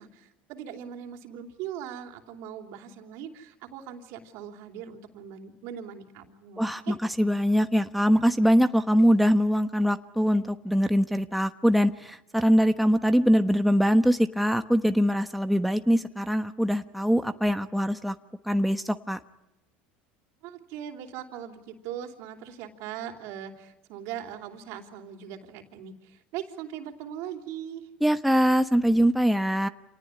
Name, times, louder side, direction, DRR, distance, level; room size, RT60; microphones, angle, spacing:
voice 1, 0.0-6.9 20.4-27.9, right 9 dB, 65° right, 5 dB, 3.3 m, -40 dB
voice 2, 6.6-18.1 18.4-19.2 28.0-29.7, equal, ahead, 8 dB, 1.1 m, -23 dB
27.5 x 19.0 x 9.9 m, 0.92 s
supercardioid pair, 95°, 5 cm